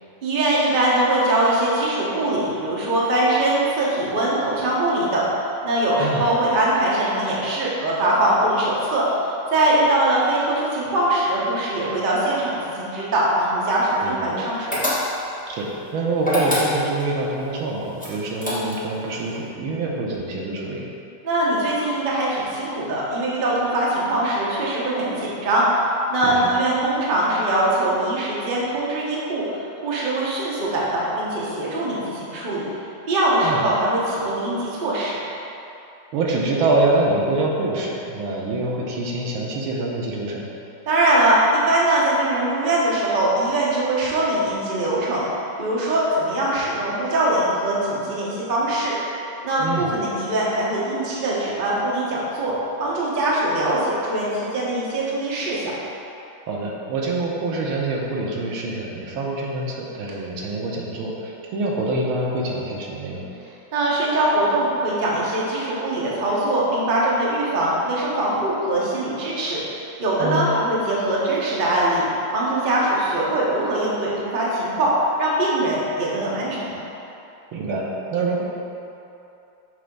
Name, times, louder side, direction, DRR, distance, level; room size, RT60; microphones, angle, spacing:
voice 1, 0.2-5.3 5.6-14.7 21.2-25.7 26.1-32.7 33.1-35.2 40.9-45.2 45.6-49.0 49.4-52.5 52.8-55.7 63.7-72.1 72.3-74.9 75.2-76.8, right 1 dB, 35° right, -6 dB, 0.8 m, -22 dB
sound 1, 14.7-15.4 16.2-17.1 18.0-19.0, left 1 dB, 5° left, 0.6 m, -24 dB
voice 2, 15.5-20.8 26.2-26.5 33.4-33.6 36.1-40.5 49.6-49.9 56.5-63.3 70.2-70.5 77.5-78.4, right 2 dB, 75° right, -2 dB, 1.5 m, -25 dB
6.6 x 3.4 x 5.2 m, 2.8 s
omnidirectional pair, 2.3 m